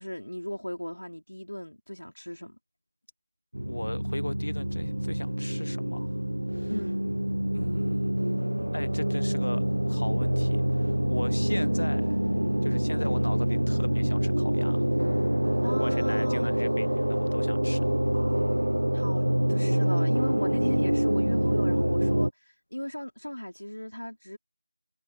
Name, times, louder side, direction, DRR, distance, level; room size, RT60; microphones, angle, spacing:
voice 1, 0.0-2.6 6.7-7.0 12.9-13.2 15.6-16.5 18.9-22.3 22.7-24.4, equal, 80° left, 4.9 m, -36 dB
sound 1, 3.5-22.3, right 1 dB, 80° right, 0.9 m, -26 dB
voice 2, 3.6-6.2 6.5-6.7 7.5-8.2 8.7-12.2 12.6-14.9 15.5-17.8, left 1 dB, 60° left, 1.1 m, -38 dB
figure-of-eight pair, 170°, 0 cm